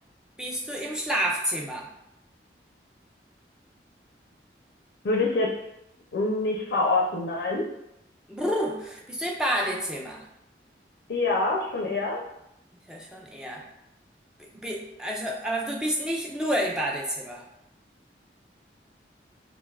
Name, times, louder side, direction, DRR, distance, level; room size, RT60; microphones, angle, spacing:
voice 1, 0.4-1.9 8.3-10.2 12.9-13.6 14.5-17.4, equal, 5° right, -2 dB, 0.3 m, -29 dB
voice 2, 5.0-5.6 6.1-7.6 11.1-12.2, left 2 dB, 75° left, -1 dB, 0.4 m, -25 dB
2.5 x 2.3 x 3.2 m, 0.83 s
head